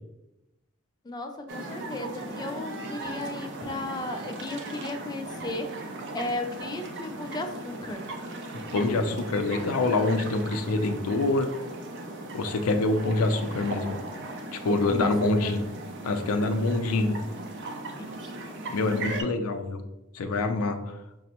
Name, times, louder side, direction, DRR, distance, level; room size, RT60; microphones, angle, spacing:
voice 1, 1.0-5.8 6.1-8.1 14.8-15.6 16.7-16.9 18.0-18.4, left 2 dB, 20° left, 5 dB, 0.3 m, -35 dB
sound 1, 1.5-19.2, right 2 dB, 55° right, 0.5 m, -38 dB
voice 2, 8.7-11.5 12.3-14.0 14.6-15.6 16.0-17.2 18.7-19.8 20.1-21.0, left 2 dB, 85° left, 7 dB, 0.4 m, -25 dB
5.1 x 2.1 x 2.8 m, 0.93 s
head